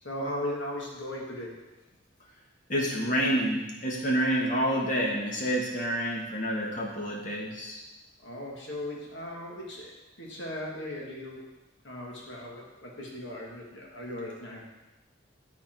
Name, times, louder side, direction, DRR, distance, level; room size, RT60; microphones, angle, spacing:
voice 1, 0.0-1.6 8.2-9.9 10.2-11.4 11.8-14.6, left 1 dB, 70° left, -3 dB, 1.8 m, -37 dB
voice 2, 2.7-7.8, equal, 40° left, -2 dB, 1.3 m, -28 dB
10.5 x 4.3 x 4.5 m, 1.0 s
head